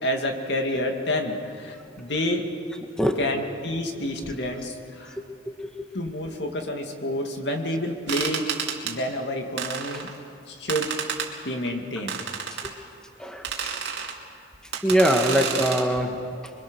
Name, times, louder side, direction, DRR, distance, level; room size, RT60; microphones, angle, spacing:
voice 1, 0.0-2.5 3.2-5.2 5.9-8.5 8.8-10.1 10.5-11.0 11.4-12.2, left 1 dB, 70° left, 3 dB, 2.4 m, -29 dB
voice 2, 5.1-5.9 12.6-12.7 13.2-13.8 14.8-16.5, equal, 5° left, 3 dB, 1.5 m, -24 dB
sound 1, 8.1-9.0 9.6-10.2 10.7-11.3 12.1-12.7 13.4-14.2 14.7-15.9, right 6 dB, 65° right, 2.5 m, -30 dB
26.5 x 23.5 x 6.4 m, 2.4 s
head